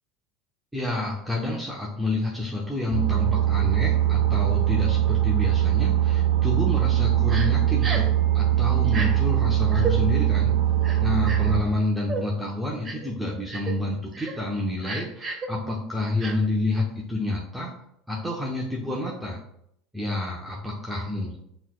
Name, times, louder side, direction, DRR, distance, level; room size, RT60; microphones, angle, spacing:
voice 1, 0.7-8.1 8.3-10.5 11.0-17.7 18.1-19.4 19.9-21.4, left 2 dB, 5° right, -4 dB, 0.8 m, -29 dB
sound 1, 2.9-11.6, right 12 dB, 85° right, 0.6 m, -22 dB
Crying sobbing, 7.3-7.5 7.8-8.1 8.9-9.1 9.7-9.9 10.8-11.5 12.1-12.2 12.8-13.1 13.5-13.7 14.1-14.3 14.8-15.5 16.2-16.3, right 4 dB, 25° right, 1.1 m, -32 dB
5.5 x 3.1 x 2.2 m, 0.73 s
supercardioid pair, 95°, 0 cm